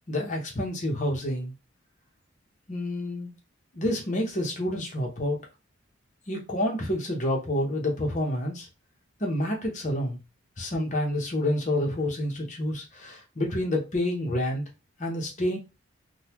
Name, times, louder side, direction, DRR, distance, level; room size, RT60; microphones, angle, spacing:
voice 1, 0.1-1.5 2.7-3.3 3.7-5.4 6.3-8.7 9.2-10.2 10.6-14.6 15.0-15.6, left 1 dB, 35° left, 0.9 m, -28 dB
3.9 x 2.3 x 2.9 m
head